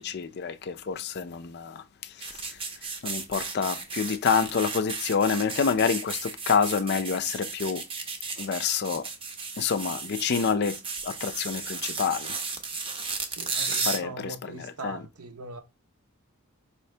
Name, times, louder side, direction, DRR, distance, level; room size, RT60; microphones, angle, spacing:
voice 1, 0.0-7.8 8.4-9.1 9.6-12.4 13.7-15.1, left 6 dB, 50° left, 0.4 m, -28 dB
sound 1, 2.2-14.0, right 4 dB, 25° right, 0.6 m, -34 dB
voice 2, 13.2-15.6, right 3 dB, 85° right, 0.8 m, -41 dB
4.9 x 2.7 x 3.2 m
head